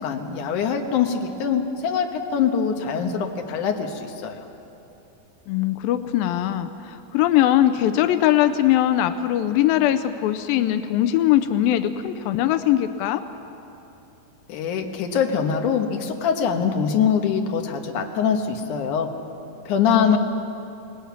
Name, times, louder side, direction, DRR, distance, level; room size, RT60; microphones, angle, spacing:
voice 1, 0.0-4.4 14.5-19.1 19.7-20.2, left 7 dB, 65° left, 3 dB, 2.7 m, -23 dB
voice 2, 5.5-13.2 19.9-20.2, left 12 dB, 90° left, 9 dB, 2.4 m, -21 dB
27.0 x 19.5 x 5.9 m, 2.9 s
omnidirectional pair, 4.0 m